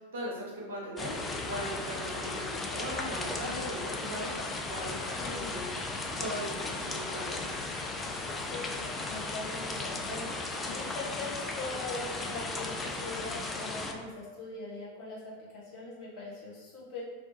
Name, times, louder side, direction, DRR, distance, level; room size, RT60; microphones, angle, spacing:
voice 1, 0.1-1.2 1.5-5.7 6.2-7.4, equal, 60° right, -4 dB, 1.1 m, -39 dB
sound 1, 1.0-13.9, left 3 dB, 15° left, 0.4 m, -36 dB
voice 2, 5.2-5.5 8.4-17.0, left 3 dB, 40° left, -6 dB, 1.3 m, -41 dB
3.2 x 3.0 x 2.8 m, 1.3 s
figure-of-eight pair, 90°, 0 cm